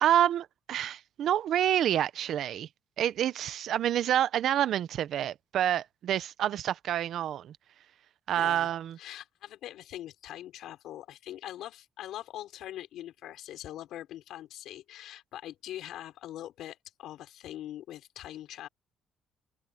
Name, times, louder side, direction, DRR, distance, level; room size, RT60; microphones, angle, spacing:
voice 1, 0.0-2.7 3.0-7.6 8.3-9.0, right 11 dB, 60° right, 0.6 m, -28 dB
voice 2, 8.4-8.7 9.0-18.7, left 13 dB, 75° left, 4.5 m, -42 dB
cardioid pair, 160°, 0 cm